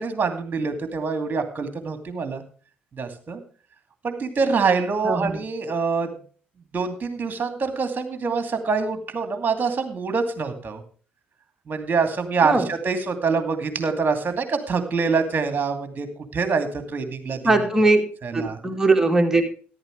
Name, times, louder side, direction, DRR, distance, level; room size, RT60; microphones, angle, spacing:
voice 1, 0.0-2.4 2.9-3.4 4.0-6.1 6.7-10.8 11.7-16.1 16.3-17.6 18.2-18.6, right 5 dB, 35° right, 8 dB, 2.5 m, -25 dB
voice 2, 5.0-5.4 12.4-12.7 17.4-18.0 18.3-19.5, right 2 dB, 10° right, 3 dB, 2.6 m, -20 dB
13.5 x 11.5 x 3.3 m, 0.41 s
figure-of-eight pair, 50°, 5 cm